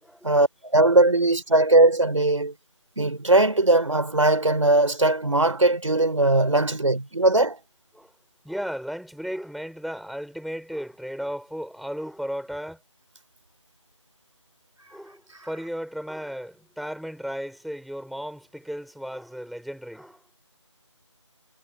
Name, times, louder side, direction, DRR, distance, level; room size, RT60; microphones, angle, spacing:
voice 1, 0.2-2.5 3.0-7.6, right 2 dB, 75° right, 3.6 m, -20 dB
voice 2, 8.4-12.8 14.9-20.3, equal, ahead, 5.5 m, -35 dB
figure-of-eight pair, 170°, 16 cm